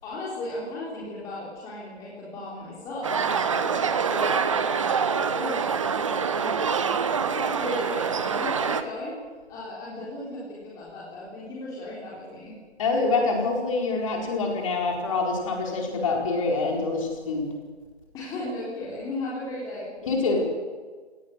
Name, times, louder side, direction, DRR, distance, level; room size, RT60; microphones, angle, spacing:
voice 1, 0.0-9.1 9.5-12.5 18.1-19.9, left 1 dB, 10° left, -6 dB, 3.6 m, -36 dB
sound 1, 3.0-8.8, right 6 dB, 30° right, 1.0 m, -25 dB
voice 2, 12.8-17.5 20.0-20.5, left 3 dB, 30° left, 0 dB, 4.6 m, -25 dB
26.5 x 18.0 x 6.4 m, 1.4 s
figure-of-eight pair, 150°, 33 cm